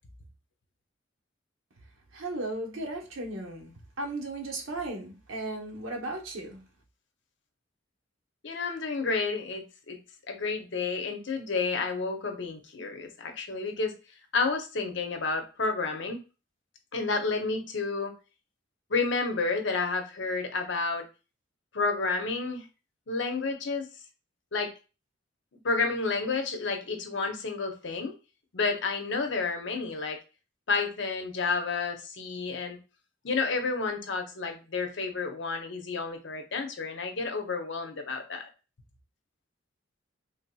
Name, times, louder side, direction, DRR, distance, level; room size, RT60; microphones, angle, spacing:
voice 1, 2.1-6.6, right 2 dB, 85° right, 1 dB, 1.0 m, -36 dB
voice 2, 8.4-10.0 10.3-13.9 14.3-16.2 16.9-18.1 18.9-21.0 21.7-22.6 23.1-23.9 24.5-24.7 25.6-28.1 28.5-30.2 30.7-32.8 33.2-38.4, left 4 dB, 65° left, 5 dB, 0.7 m, -30 dB
3.5 x 2.7 x 2.2 m, 0.31 s
head